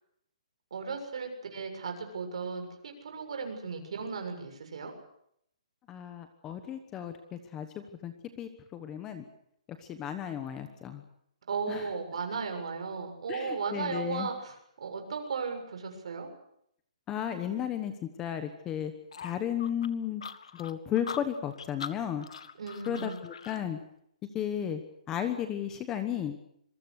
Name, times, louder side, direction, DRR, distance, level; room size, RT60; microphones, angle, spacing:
voice 1, 0.7-4.9 11.5-16.3 22.6-23.2, right 5 dB, 50° right, 5 dB, 7.1 m, -36 dB
voice 2, 5.9-7.1 7.5-9.2 9.9-11.0 11.7-11.8 13.3-14.3 17.1-18.9 19.2-20.2 20.6-22.3 22.9-23.8 24.3-24.8 25.1-26.3, left 9 dB, 10° left, 9 dB, 1.1 m, -34 dB
sound 1, 19.1-23.6, left 7 dB, 55° left, 1.7 m, -43 dB
26.5 x 23.0 x 6.5 m, 0.72 s
hypercardioid pair, 180°, 4 cm